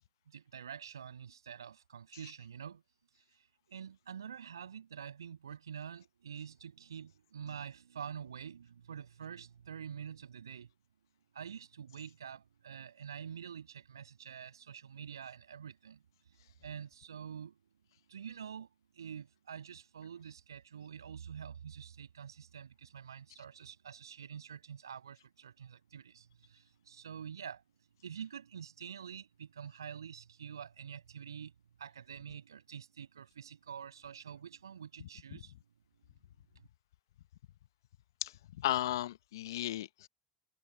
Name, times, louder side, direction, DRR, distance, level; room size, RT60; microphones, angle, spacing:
voice 1, 0.3-2.8 3.1-10.7 11.3-17.6 18.1-27.6 28.0-31.5 31.8-35.5 36.5-36.7, right 8 dB, 80° right, 7.7 m, -47 dB
voice 2, 38.2-40.1, left 14 dB, 75° left, 0.9 m, -35 dB
figure-of-eight pair, 75°, 2 cm